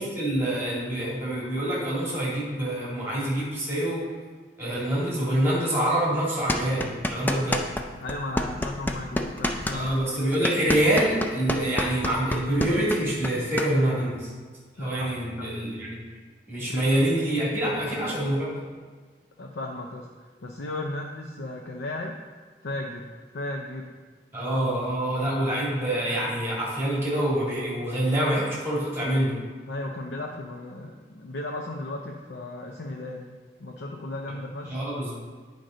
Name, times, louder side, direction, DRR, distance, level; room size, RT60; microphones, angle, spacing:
voice 1, 0.0-4.1 4.6-7.7 9.7-14.3 14.8-16.0 16.5-18.7 24.3-29.4 34.7-35.1, right 1 dB, 15° right, -6 dB, 2.4 m, -26 dB
sound 1, 6.5-7.8 8.1-13.7, left 1 dB, 10° left, 0.4 m, -27 dB
voice 2, 8.0-9.9 14.8-15.1 15.4-15.5 16.7-16.9 17.6-17.8 19.4-22.2 22.6-23.9 29.7-34.8, left 2 dB, 90° left, 1 dB, 0.6 m, -35 dB
9.1 x 5.2 x 3.9 m, 1.5 s
head